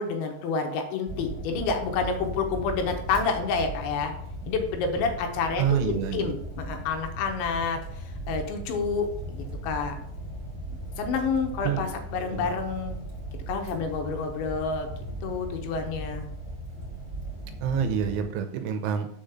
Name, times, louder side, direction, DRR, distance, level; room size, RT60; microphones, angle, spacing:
voice 1, 0.0-4.1 4.4-10.0 11.0-13.0 13.5-14.9 15.2-16.3, left 5 dB, 75° left, 4 dB, 3.1 m, -29 dB
Fire, 1.1-18.3, right 1 dB, 25° right, 3.8 m, -38 dB
voice 2, 5.6-6.4 11.6-11.8 12.3-12.5 17.6-19.1, right 8 dB, 85° right, 7 dB, 3.1 m, -27 dB
6.6 x 5.1 x 7.0 m, 0.71 s
omnidirectional pair, 5.6 m